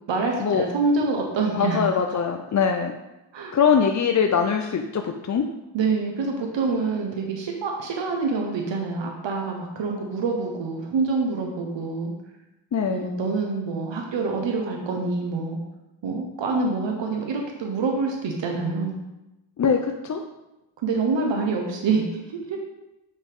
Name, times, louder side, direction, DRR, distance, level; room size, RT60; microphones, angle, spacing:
voice 1, 0.1-1.8 3.3-3.5 5.7-12.1 12.9-15.6 16.0-18.9 20.8-22.6, right 4 dB, 85° right, 1 dB, 1.2 m, -26 dB
voice 2, 1.6-2.9 3.5-5.4 12.7-13.1 19.6-20.2, left 6 dB, 40° left, 5 dB, 0.5 m, -22 dB
7.7 x 5.8 x 3.6 m, 0.97 s
cardioid pair, 85°, 43 cm